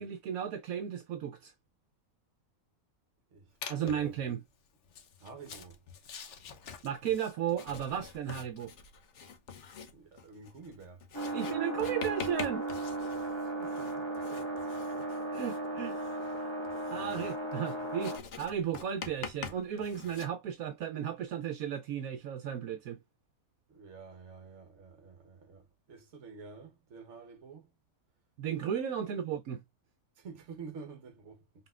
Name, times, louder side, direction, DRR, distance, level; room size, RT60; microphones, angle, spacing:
voice 1, 0.0-1.5 3.7-4.4 6.8-8.7 11.3-12.7 15.3-16.0 16.4-16.5 16.9-23.0 28.4-29.6, right 9 dB, 75° right, 1.1 m, -35 dB
Writing, 3.6-4.1 4.8-20.3, left 6 dB, 55° left, 1.0 m, -46 dB
voice 2, 3.7-4.2 5.2-5.8 9.9-11.1 13.1-14.5 23.7-27.7 29.0-29.1 30.2-31.7, right 5 dB, 55° right, 1.3 m, -50 dB
sound 1, 11.1-18.2, right 2 dB, 20° left, 1.5 m, -36 dB
5.3 x 3.5 x 2.4 m
omnidirectional pair, 1.5 m